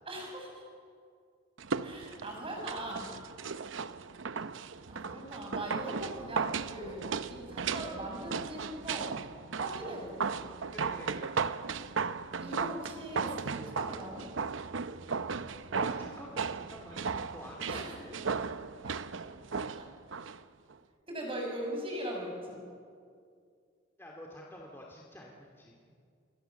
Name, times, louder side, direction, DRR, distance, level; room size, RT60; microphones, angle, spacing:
voice 1, 0.1-0.5 1.8-3.1 4.9-9.1 9.6-10.3 12.4-14.3 17.7-17.9 19.5-19.9 21.1-22.6, right 1 dB, 30° right, 0 dB, 6.5 m, -40 dB
sound 1, 1.6-20.4 20.7-20.8, right 5 dB, 80° right, 0.7 m, -36 dB
voice 2, 10.7-11.3 15.7-18.2 18.7-18.8 24.0-25.8, left 1 dB, 10° left, -2 dB, 2.4 m, -48 dB
27.5 x 21.5 x 7.1 m, 2.2 s
head